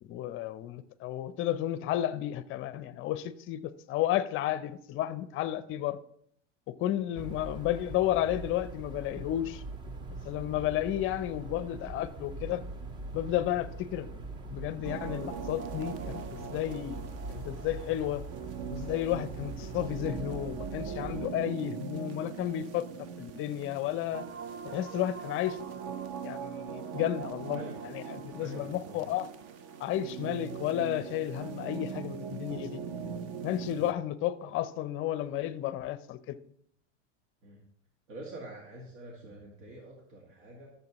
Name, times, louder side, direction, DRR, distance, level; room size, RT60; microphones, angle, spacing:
voice 1, 0.0-6.0 6.8-9.6 10.2-12.6 13.1-18.2 18.7-22.9 23.2-24.2 24.6-25.6 26.2-29.3 29.8-32.8 33.4-36.4, left 12 dB, 35° left, 0.5 m, -32 dB
sound 1, 7.2-21.3, right 2 dB, 15° right, 0.3 m, -42 dB
sound 2, 14.8-33.9, right 7 dB, 40° right, 0.7 m, -41 dB
voice 2, 28.4-29.0 33.7-33.8 37.4-37.6 38.1-40.7, right 2 dB, 85° right, 2.0 m, -46 dB
13.5 x 6.9 x 3.0 m
supercardioid pair, 125°, 37 cm